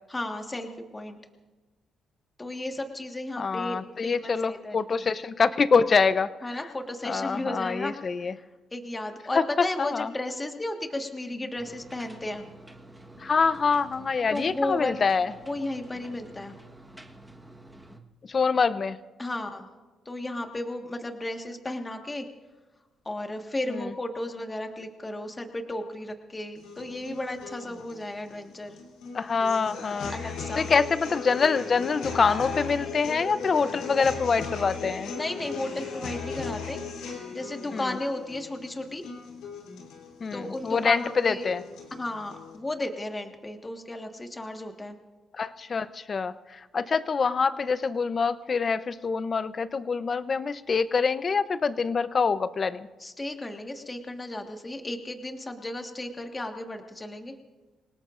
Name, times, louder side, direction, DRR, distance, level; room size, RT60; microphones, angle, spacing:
voice 1, 0.1-1.2 2.4-5.1 6.4-8.5 8.7-12.5 14.3-15.0 15.5-16.5 19.2-19.7 20.0-22.3 23.0-28.8 30.1-30.7 35.2-39.0 40.3-41.5 42.0-45.0 53.0-57.3, left 1 dB, 20° left, 4 dB, 1.6 m, -34 dB
voice 2, 3.4-6.3 7.0-8.3 9.3-9.5 9.8-10.1 13.2-15.3 18.3-19.0 23.7-23.8 29.1-30.1 30.6-35.1 37.7-37.9 40.2-41.6 45.3-52.9, left 5 dB, 40° left, 14 dB, 0.7 m, -25 dB
sound 1, 11.6-18.0, right 1 dB, 5° right, 1.3 m, -49 dB
sound 2, 26.6-42.6, left 5 dB, 90° left, 3.3 m, -38 dB
27.5 x 18.0 x 2.5 m, 1.3 s
cardioid pair, 90°, 0 cm